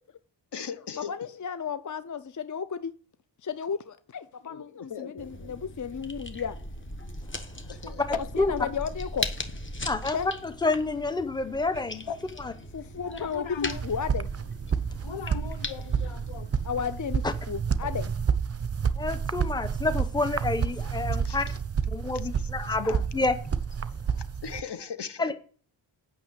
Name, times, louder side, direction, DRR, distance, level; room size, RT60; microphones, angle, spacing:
voice 1, 0.5-1.1 4.4-5.5 7.7-8.0 21.2-21.4 22.4-22.8 24.1-25.3, left 7 dB, 65° left, 1.1 m, -39 dB
voice 2, 1.1-2.9 3.4-6.6 8.4-9.3 10.1-10.3 12.7-13.4 13.8-14.3 16.6-18.1 22.7-23.0, left 7 dB, 45° left, 0.5 m, -33 dB
sound 1, 5.2-17.3, left 1 dB, 25° left, 1.1 m, -39 dB
voice 3, 9.8-10.2 10.4-12.0 12.4-12.5 17.2-17.3 19.0-21.5 21.9-23.4 25.2-25.3, left 3 dB, 10° left, 0.8 m, -28 dB
voice 4, 13.0-13.8 15.0-16.5 25.3-25.4, left 6 dB, 90° left, 1.0 m, -36 dB
sound 2, 13.7-24.6, right 6 dB, 35° right, 0.6 m, -30 dB
9.1 x 5.9 x 7.9 m
wide cardioid pair, 130°, 44 cm